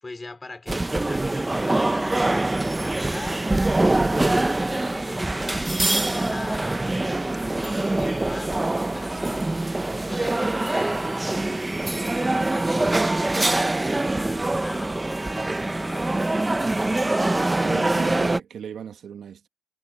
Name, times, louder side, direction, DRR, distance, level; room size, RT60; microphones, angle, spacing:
voice 1, 0.0-3.5 4.0-9.5 10.0-11.3 12.0-13.4 14.1-16.3 17.0-17.9, left 3 dB, 20° left, 3.1 m, -41 dB
sound 1, 0.7-18.4, right 2 dB, 15° right, 0.9 m, -24 dB
sound 2, 7.6-13.4, left 5 dB, 35° left, 7.7 m, -54 dB
voice 2, 17.6-19.5, right 8 dB, 60° right, 1.6 m, -36 dB
cardioid pair, 90°, 0 cm